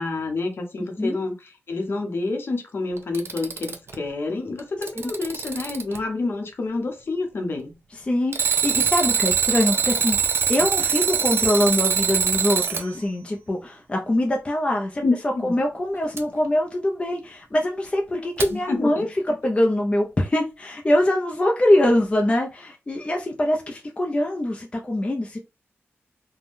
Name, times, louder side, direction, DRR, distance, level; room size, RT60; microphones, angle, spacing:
voice 1, 0.0-7.7 15.0-15.6 18.5-19.1, left 3 dB, 55° left, 0.8 m, -28 dB
Alarm, 3.0-3.9 4.6-6.0 8.3-12.8 16.2-16.3 18.4-18.5, right 7 dB, 60° right, 0.5 m, -23 dB
voice 2, 8.0-15.0 15.4-25.4, left 1 dB, 25° left, 0.5 m, -23 dB
3.5 x 2.1 x 2.5 m
wide cardioid pair, 120°, 5 cm